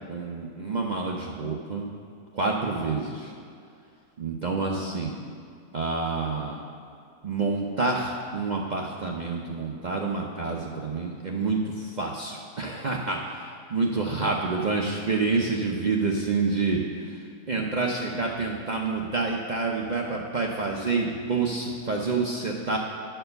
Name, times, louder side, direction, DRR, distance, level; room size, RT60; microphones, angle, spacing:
voice 1, 0.1-1.9 2.3-3.3 4.2-5.2 5.7-6.6 7.2-13.4 13.7-17.2 17.5-22.8, right 3 dB, 70° right, -1 dB, 0.4 m, -28 dB
10.0 x 4.5 x 6.7 m, 2.4 s
omnidirectional pair, 1.6 m